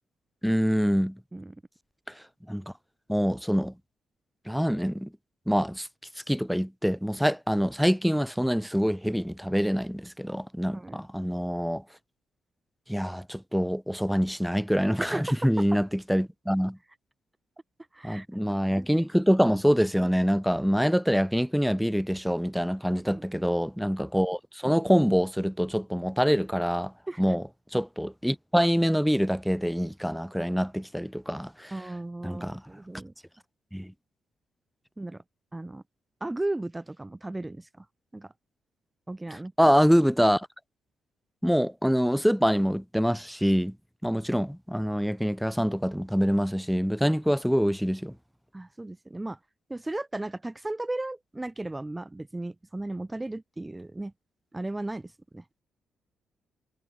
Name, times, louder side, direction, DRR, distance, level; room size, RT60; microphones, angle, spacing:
voice 1, 0.4-1.2 2.5-2.7 3.1-3.7 4.5-5.1 5.5-5.9 6.3-11.8 12.9-16.8 18.0-26.9 27.2-27.4 27.7-31.7 32.2-32.6 33.7-33.9 39.3-40.5 41.4-43.7 44.0-48.1, equal, ahead, 5.5 m, -25 dB
voice 2, 15.0-15.7 17.9-18.3 18.7-18.9 22.9-23.4 27.1-27.2 31.7-33.1 35.0-35.2 35.5-35.8 36.2-37.8 38.1-38.3 39.1-39.5 48.5-49.4 49.7-54.1 54.5-55.4, right 2 dB, 15° right, 4.7 m, -35 dB
supercardioid pair, 55°, 0 cm